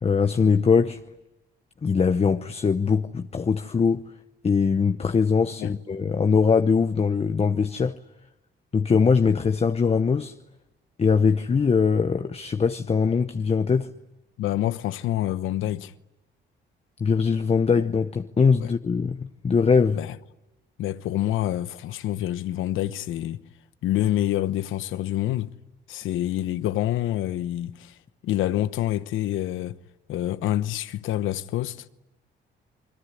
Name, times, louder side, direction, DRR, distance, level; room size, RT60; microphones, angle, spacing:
voice 1, 0.0-1.0 1.8-4.0 4.4-8.0 8.7-10.3 11.0-13.9 17.0-20.0, left 5 dB, 30° left, 0.9 m, -21 dB
voice 2, 14.4-15.9 18.6-18.7 19.9-20.2 20.8-23.4 23.8-25.5 25.9-28.0 28.2-29.8 30.1-31.9, left 13 dB, 85° left, 1.0 m, -27 dB
28.0 x 22.0 x 9.8 m
cardioid pair, 90°, 20 cm